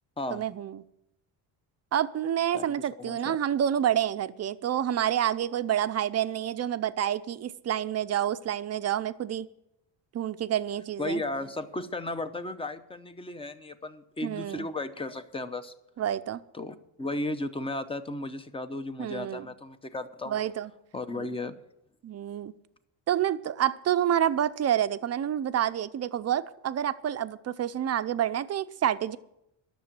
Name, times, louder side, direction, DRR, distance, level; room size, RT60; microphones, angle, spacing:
voice 1, 0.3-0.8 1.9-9.5 10.1-11.2 14.2-14.7 16.0-16.4 19.0-19.5 20.3-20.7 21.1-21.3 22.0-22.5 23.1-29.2, right 10 dB, 35° right, 12 dB, 0.6 m, -28 dB
voice 2, 2.5-3.4 11.0-15.7 16.5-20.4 20.9-21.6, left 2 dB, 10° left, 11 dB, 0.7 m, -35 dB
12.5 x 6.9 x 8.8 m, 0.81 s
cardioid pair, 145°, 45 cm